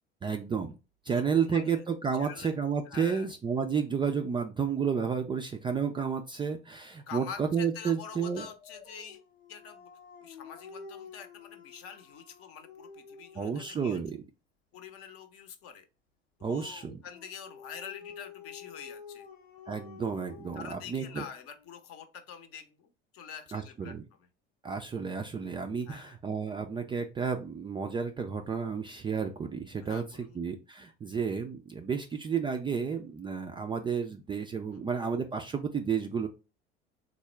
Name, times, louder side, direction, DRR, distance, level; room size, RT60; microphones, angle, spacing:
voice 1, 0.2-0.7 1.1-8.4 13.4-14.2 16.4-17.0 19.7-21.2 23.5-24.0 24.6-36.3, right 6 dB, 15° right, 0.3 m, -31 dB
voice 2, 1.1-1.8 2.2-2.5 2.9-3.3 7.1-9.2 9.5-9.9 10.2-14.0 14.7-15.9 16.4-19.3 20.5-24.3 25.9-26.2 29.8-30.4 34.7-35.0, left 7 dB, 50° left, 0.7 m, -46 dB
Dog, 8.1-13.9 17.1-21.7, left 6 dB, 85° left, 0.7 m, -50 dB
3.6 x 2.1 x 3.2 m
figure-of-eight pair, 65°, 31 cm